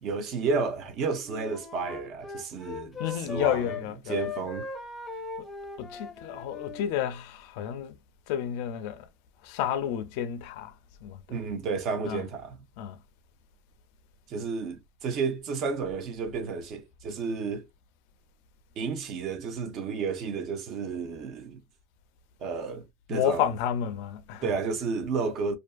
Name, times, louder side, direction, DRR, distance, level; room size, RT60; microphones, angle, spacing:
voice 1, 0.0-4.7 11.3-12.6 14.3-17.7 18.8-21.6 22.4-23.5 24.4-25.6, right 4 dB, 40° right, 0.6 m, -32 dB
Wind instrument woodwind instrument, 1.2-3.8 4.1-6.8, left 4 dB, 10° left, 0.6 m, -39 dB
voice 2, 3.0-4.2 5.4-5.5 5.8-8.0 8.3-9.0 9.4-10.7 11.0-11.2 12.1-12.2 12.8-13.0 23.1-24.5, left 9 dB, 70° left, 0.4 m, -30 dB
2.5 x 2.4 x 2.3 m
cardioid pair, 170°, 0 cm